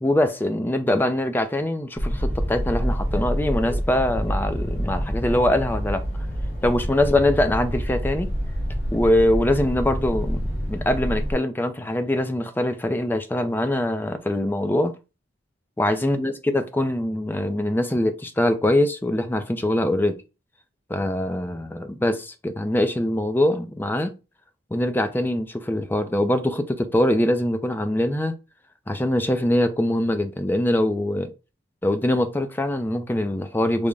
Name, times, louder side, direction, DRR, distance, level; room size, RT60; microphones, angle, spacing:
voice 1, 0.0-6.0 6.6-8.3 8.9-14.9 15.8-20.2 20.9-24.1 24.7-28.3 28.9-31.3 31.8-33.9, left 1 dB, 10° left, 0.3 m, -23 dB
sound 1, 1.9-11.3, equal, 60° left, 1.0 m, -27 dB
3.4 x 2.1 x 3.7 m
head